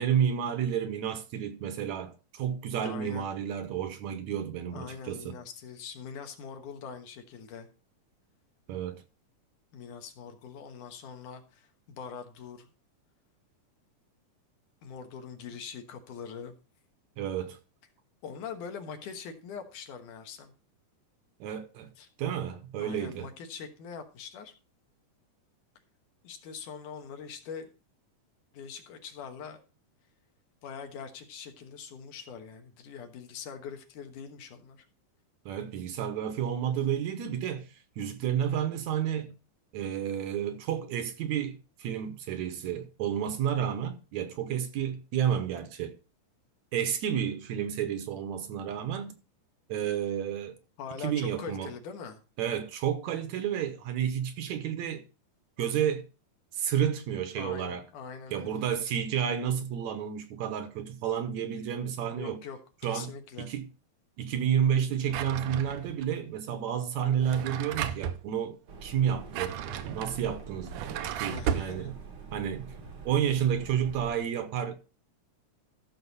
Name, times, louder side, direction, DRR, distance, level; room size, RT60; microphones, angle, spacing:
voice 1, 0.0-5.4 8.7-9.0 17.2-17.6 21.4-21.9 22.2-23.3 35.5-37.7 38.0-39.3 39.7-46.0 46.7-49.2 49.7-50.6 51.0-51.7 52.4-55.0 55.6-56.0 56.5-57.8 58.3-62.4 62.8-63.1 63.4-63.7 64.2-70.8 71.2-71.9 72.3-72.7 73.1-74.7, right 9 dB, 70° right, 2.1 m, -31 dB
voice 2, 2.8-3.3 4.7-7.7 9.7-12.7 14.8-16.5 18.2-20.5 22.0-22.1 22.8-24.5 26.2-27.7 28.5-29.6 30.6-34.9 50.8-52.2 57.4-58.7 62.2-62.6 62.8-63.5 71.2-72.0, left 6 dB, 75° left, 2.8 m, -43 dB
Drawer open or close, 65.1-66.1 67.1-68.2 69.1-71.7, right 9 dB, 85° right, 2.3 m, -34 dB
sound 1, 68.7-74.2, right 4 dB, 50° right, 1.2 m, -45 dB
13.5 x 6.3 x 4.1 m
omnidirectional pair, 3.6 m